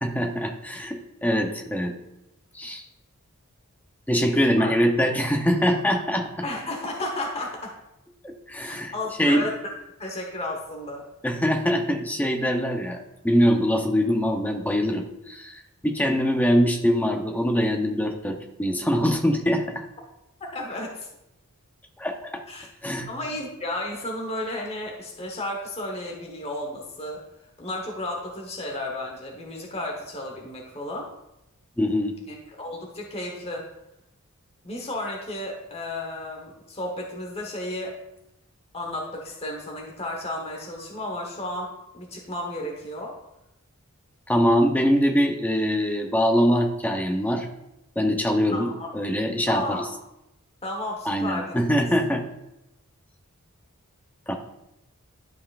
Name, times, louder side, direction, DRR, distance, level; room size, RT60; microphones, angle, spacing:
voice 1, 0.0-1.9 2.5-2.8 4.1-6.3 8.2-8.9 9.2-9.4 11.2-19.9 22.0-22.4 22.8-23.1 31.8-32.2 44.3-47.5 48.0-49.9 51.1-52.2 54.3-54.4, equal, 10° left, 3 dB, 0.7 m, -23 dB
voice 2, 6.4-7.7 8.6-9.7 10.0-11.0 20.5-21.1 22.5-22.7 23.1-27.2 27.6-31.1 32.3-33.6 34.6-38.0 38.7-43.1 48.5-48.9 49.5-49.9 50.6-51.5, left 1 dB, 30° left, 0 dB, 1.1 m, -33 dB
12.0 x 5.5 x 2.5 m, 0.88 s
head